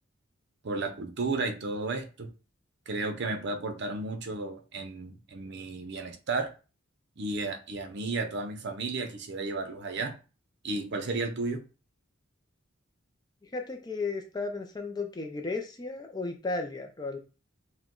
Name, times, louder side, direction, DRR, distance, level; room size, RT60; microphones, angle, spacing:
voice 1, 0.6-2.3 2.9-6.5 7.2-10.2 10.6-11.6, right 3 dB, 55° right, 0.6 m, -33 dB
voice 2, 13.4-17.2, left 3 dB, 20° left, 0.4 m, -34 dB
4.8 x 2.1 x 3.8 m
head